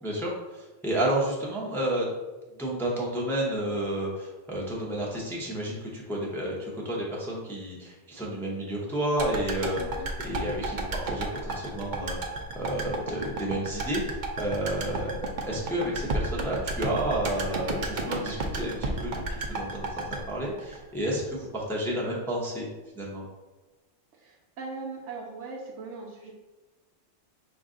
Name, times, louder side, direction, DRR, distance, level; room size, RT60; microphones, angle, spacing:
voice 1, 0.0-2.1 2.6-9.8 10.2-15.2 15.4-22.7 23.0-23.2, right 1 dB, 5° left, -4 dB, 0.6 m, -31 dB
sound 1, 9.2-21.4 21.6-21.7, right 2 dB, 55° right, 0.6 m, -32 dB
voice 2, 24.1-26.3, right 3 dB, 80° right, -3 dB, 1.0 m, -40 dB
5.2 x 2.4 x 3.7 m, 1.2 s
omnidirectional pair, 1.2 m